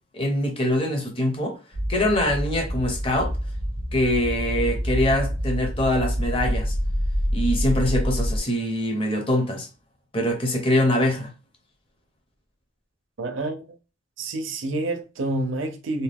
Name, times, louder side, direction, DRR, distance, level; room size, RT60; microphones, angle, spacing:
voice 1, 0.1-1.6 1.9-3.3 3.9-6.7 7.3-9.7 10.1-11.3, left 1 dB, 30° left, 0.7 m, -23 dB
sound 1, 1.7-8.4, equal, 75° left, 1.0 m, -26 dB
voice 2, 13.2-13.6 14.2-16.0, right 2 dB, 85° right, 0.6 m, -28 dB
2.7 x 2.2 x 3.4 m
head